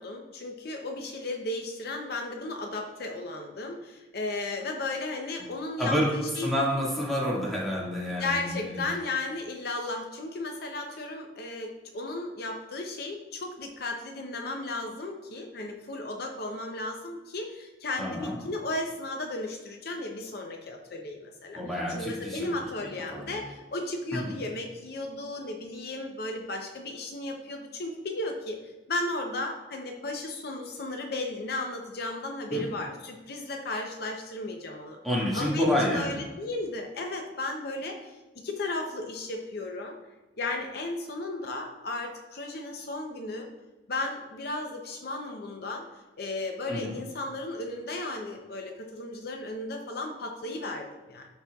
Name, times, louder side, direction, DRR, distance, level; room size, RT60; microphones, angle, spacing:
voice 1, 0.0-6.5 8.2-35.0 35.3-38.2 38.4-40.0 40.4-43.5 43.9-45.9 46.2-51.3, left 2 dB, 55° left, 3 dB, 0.6 m, -35 dB
voice 2, 5.8-6.1 6.4-8.8 18.0-18.4 21.5-22.5 23.1-23.4 24.1-24.3 32.5-32.6 35.0-36.2 46.7-46.9, equal, ahead, -6 dB, 1.8 m, -29 dB
12.0 x 4.3 x 2.3 m, 1.2 s
head